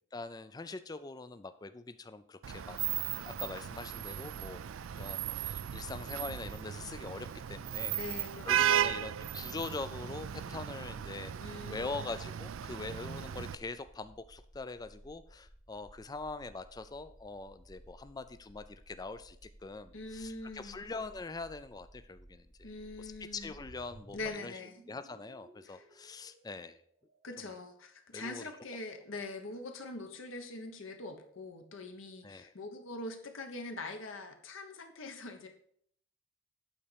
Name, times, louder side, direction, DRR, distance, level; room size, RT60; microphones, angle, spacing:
voice 1, 0.1-2.8 3.2-4.6 4.9-8.0 8.4-19.4 19.6-22.7 23.0-24.6 24.9-26.8 28.1-28.4 32.2-32.5, left 3 dB, 20° left, 11 dB, 0.4 m, -43 dB
Vehicle horn car horn honking / Traffic noise roadway noise, 2.4-13.6, right 10 dB, 75° right, 0.4 m, -36 dB
voice 2, 7.9-8.9 11.4-12.0 19.9-20.8 22.6-23.5 24.1-24.8 25.6-25.9 27.2-35.5, left 2 dB, 75° left, 4 dB, 1.2 m, -43 dB
sound 1, 11.6-24.3, equal, 5° right, 0.9 m, -58 dB
sound 2, 23.4-27.6, right 1 dB, 40° right, 0.8 m, -59 dB
8.6 x 4.2 x 6.8 m, 0.64 s
head